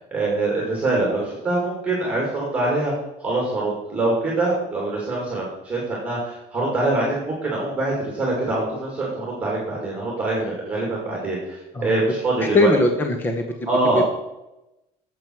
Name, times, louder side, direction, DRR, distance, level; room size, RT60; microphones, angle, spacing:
voice 1, 0.1-2.9 3.2-12.7 13.7-14.0, right 2 dB, 10° right, -3 dB, 2.4 m, -24 dB
voice 2, 11.7-12.1 12.4-13.5 13.9-14.1, left 2 dB, 15° left, 5 dB, 0.7 m, -20 dB
11.0 x 7.5 x 4.6 m, 0.92 s
cardioid pair, 170°, 15 cm